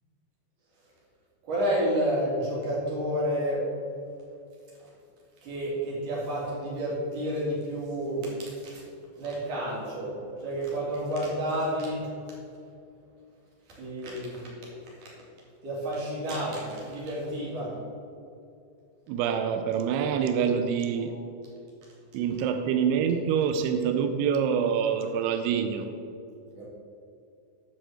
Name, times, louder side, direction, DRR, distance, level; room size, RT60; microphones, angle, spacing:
voice 1, 1.5-3.6 4.8-4.9 5.4-8.8 9.2-12.1 13.8-14.5 15.6-17.7 26.5-26.7, equal, 45° right, -5 dB, 4.0 m, -30 dB
voice 2, 19.1-21.1 22.1-25.9, right 7 dB, 85° right, 7 dB, 2.3 m, -26 dB
11.0 x 5.2 x 7.7 m, 2.5 s
omnidirectional pair, 5.4 m